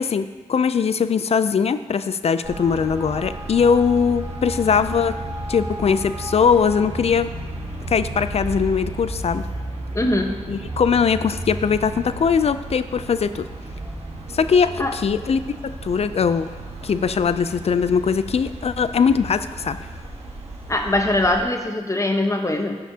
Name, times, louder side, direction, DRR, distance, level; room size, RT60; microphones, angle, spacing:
voice 1, 0.0-5.2 5.5-7.3 7.9-9.5 10.5-13.5 14.3-16.5 16.8-19.8, left 6 dB, 60° left, 12 dB, 0.4 m, -21 dB
Traffic noise roadway noise, 2.4-21.4, right 1 dB, 60° right, 1.5 m, -33 dB
voice 2, 9.9-10.4 14.8-15.0 20.7-22.8, left 1 dB, 25° left, 3 dB, 1.1 m, -22 dB
15.0 x 5.6 x 2.8 m, 1.5 s
cardioid pair, 60°, 12 cm